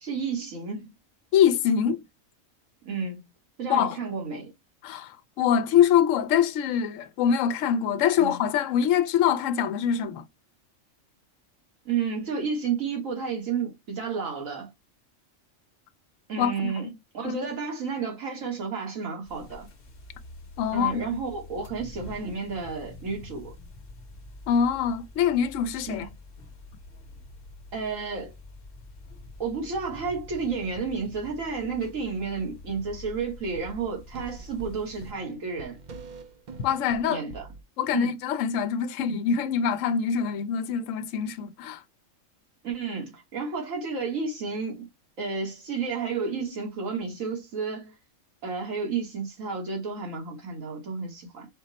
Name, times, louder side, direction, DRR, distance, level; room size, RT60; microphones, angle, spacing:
voice 1, 0.0-0.9 2.9-3.2 3.6-4.5 8.2-8.4 11.9-14.7 16.3-16.9 17.1-19.7 20.7-23.5 25.9-26.1 27.7-28.3 29.4-35.8 37.1-37.4 37.9-38.1 42.6-44.9 45.2-47.9 48.4-51.5, right 5 dB, 85° right, 1.8 m, -31 dB
voice 2, 1.3-2.0 3.7-4.0 4.8-10.2 16.4-16.5 16.8-17.0 17.2-17.4 20.6-21.2 24.5-26.1 36.6-37.2 37.8-41.8, left 8 dB, 75° left, 0.9 m, -24 dB
sound 1, 19.3-35.1, left 2 dB, 50° left, 0.9 m, -46 dB
sound 2, 31.6-31.7 32.0-33.1 33.5-37.6, right 3 dB, 60° right, 0.5 m, -45 dB
5.0 x 2.1 x 3.9 m
omnidirectional pair, 1.3 m